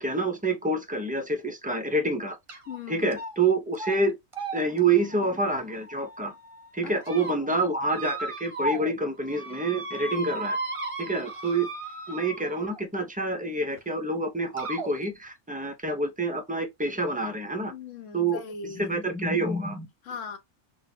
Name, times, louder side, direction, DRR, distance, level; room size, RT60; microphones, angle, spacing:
voice 1, 0.0-2.6 2.9-4.2 4.5-6.3 6.7-10.6 11.0-11.7 12.1-17.7 18.1-19.9, right 2 dB, 15° right, 0.3 m, -27 dB
sound 1, 2.5-2.8 3.1-3.5 3.7-4.0 4.3-6.3 6.8-7.3 7.9-8.9 9.2-12.8 13.8-13.9 14.6-14.9, right 2 dB, 30° right, 0.7 m, -35 dB
voice 2, 2.7-3.1 6.8-7.3 17.6-18.9 20.1-20.4, left 5 dB, 75° left, 1.2 m, -39 dB
5.9 x 2.3 x 2.7 m
omnidirectional pair, 1.3 m